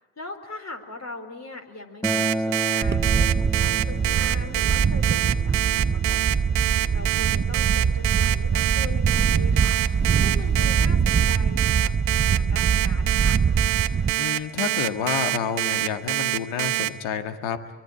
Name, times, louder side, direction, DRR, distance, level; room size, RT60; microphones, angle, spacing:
voice 1, 0.2-6.4 6.9-13.4, left 2 dB, 30° left, 5 dB, 4.4 m, -40 dB
Acoustic guitar, 2.0-7.2, right 1 dB, 5° left, 1.5 m, -32 dB
Alarm, 2.0-16.9, right 19 dB, 75° right, 1.1 m, -25 dB
Wind, 2.8-14.1, right 6 dB, 20° right, 0.8 m, -23 dB
voice 2, 14.2-17.6, left 8 dB, 70° left, 8 dB, 2.0 m, -29 dB
24.0 x 23.5 x 8.8 m, 1.2 s
hypercardioid pair, 60°, 49 cm